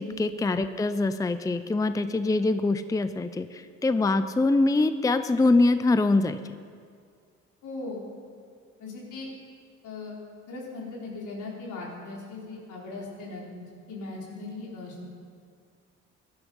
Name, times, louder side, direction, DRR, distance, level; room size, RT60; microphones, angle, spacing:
voice 1, 0.0-6.4, left 2 dB, 10° left, 11 dB, 0.5 m, -24 dB
voice 2, 7.6-8.0 8.8-9.3 9.8-10.2 10.5-13.4 13.9-15.0, left 3 dB, 80° left, -3 dB, 4.2 m, -38 dB
16.0 x 11.5 x 5.6 m, 2.1 s
cardioid pair, 90°, 30 cm